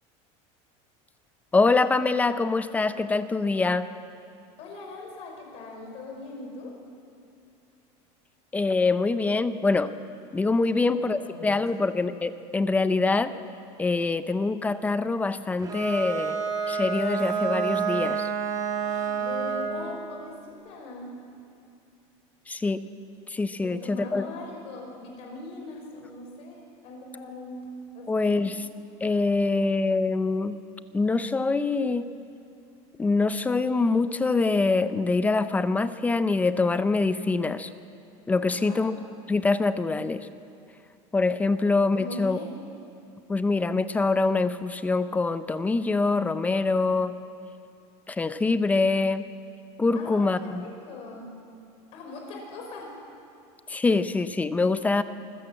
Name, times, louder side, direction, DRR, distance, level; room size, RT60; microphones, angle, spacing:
voice 1, 1.5-3.9 8.5-9.9 10.3-13.3 13.8-16.4 16.7-18.3 22.5-22.8 23.3-24.3 28.1-28.7 29.0-30.6 30.9-32.1 33.0-37.7 38.3-38.9 39.3-40.3 41.1-42.4 43.3-47.1 48.1-49.3 49.8-50.7 53.7-55.0, left 3 dB, 10° left, 12 dB, 0.5 m, -24 dB
voice 2, 4.6-6.7 10.7-11.8 18.8-21.1 23.6-27.7 27.9-28.5 38.5-38.8 42.0-42.5 49.9-51.3 51.9-53.0, left 3 dB, 45° left, 1 dB, 5.4 m, -40 dB
Bowed string instrument, 15.6-19.9, right 6 dB, 25° right, 2.7 m, -28 dB
25.5 x 15.0 x 7.7 m, 2.5 s
supercardioid pair, 160°, 15 cm